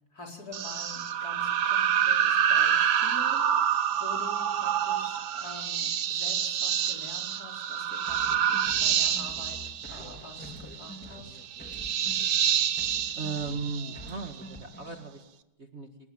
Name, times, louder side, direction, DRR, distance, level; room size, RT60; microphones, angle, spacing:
voice 1, 0.1-11.4, left 2 dB, 45° left, 1 dB, 5.7 m, -46 dB
sound 1, 0.5-14.4, right 9 dB, 70° right, 1.9 m, -27 dB
sound 2, 8.1-12.5 12.8-15.1, equal, 5° left, 3.2 m, -47 dB
voice 2, 13.2-15.2 15.6-15.9, right 4 dB, 35° right, 5 dB, 1.9 m, -36 dB
30.0 x 19.0 x 9.0 m, 0.93 s
omnidirectional pair, 2.2 m